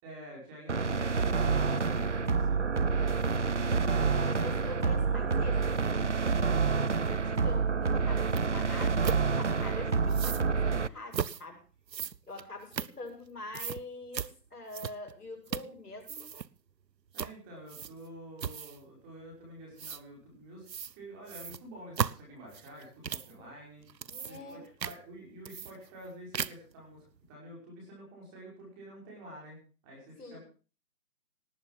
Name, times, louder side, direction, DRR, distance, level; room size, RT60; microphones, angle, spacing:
voice 1, 0.0-2.7 5.0-5.2 17.1-20.7 20.9-23.9 24.3-30.4, equal, 10° right, -3 dB, 5.1 m, -49 dB
sound 1, 0.7-10.9, right 5 dB, 45° right, 0.7 m, -28 dB
voice 2, 3.5-6.1 6.4-11.6 12.3-16.3 24.0-24.6 30.2-30.4, left 2 dB, 65° left, 3 dB, 6.7 m, -45 dB
sound 2, 8.4-8.5 9.0-9.2 10.1-10.5 11.1-11.4 11.9-13.3 13.5-13.8 14.1-14.3 14.7-15.1 15.5-16.5 17.1-17.4 17.7-18.1 18.4-18.8 19.8-20.0 20.7-20.9 21.3-23.3 23.8-24.5 24.8-25.0 25.4-26.1 26.3-26.7, right 7 dB, 80° right, 0.9 m, -36 dB
18.5 x 9.0 x 6.1 m, 0.37 s
figure-of-eight pair, 170°, 49 cm